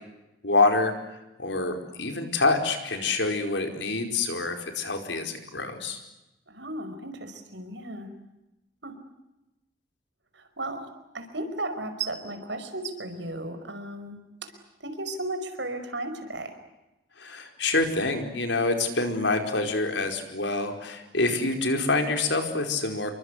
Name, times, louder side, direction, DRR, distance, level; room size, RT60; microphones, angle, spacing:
voice 1, 0.4-0.9 1.4-6.0 17.2-23.1, left 3 dB, 75° left, 5 dB, 4.9 m, -26 dB
voice 2, 6.5-8.1 8.8-9.0 10.3-10.9 11.1-16.6, right 2 dB, 75° right, 8 dB, 5.2 m, -35 dB
29.0 x 23.5 x 8.2 m, 0.96 s
head